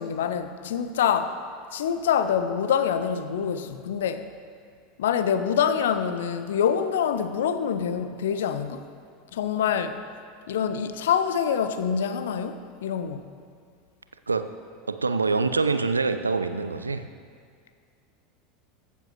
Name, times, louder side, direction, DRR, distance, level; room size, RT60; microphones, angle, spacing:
voice 1, 0.0-1.4 1.7-4.3 5.0-8.9 9.3-10.0 10.5-13.2, left 8 dB, 65° left, 0.4 m, -25 dB
voice 2, 14.9-17.1, right 4 dB, 80° right, 0.3 m, -25 dB
14.5 x 7.3 x 3.0 m
figure-of-eight pair, 75°, 0 cm